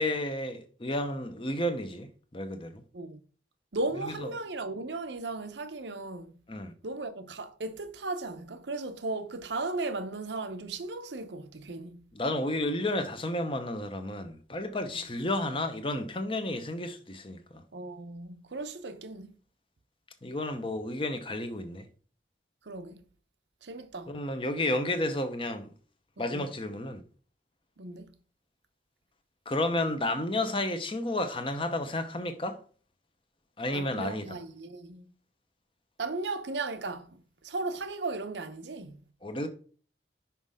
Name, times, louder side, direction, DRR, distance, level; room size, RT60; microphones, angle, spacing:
voice 1, 0.0-2.8 4.2-4.3 6.5-6.7 12.1-17.6 20.2-21.8 24.1-25.7 26.2-27.0 29.5-32.6 33.6-34.4 39.2-39.5, left 1 dB, 30° left, 0.8 m, -31 dB
voice 2, 3.7-6.4 6.8-12.0 14.9-15.0 17.7-19.3 22.7-23.0 23.6-24.1 26.2-26.5 27.8-28.1 33.7-35.1 36.0-39.0, right 3 dB, 85° right, 0.8 m, -36 dB
5.8 x 5.4 x 3.5 m
head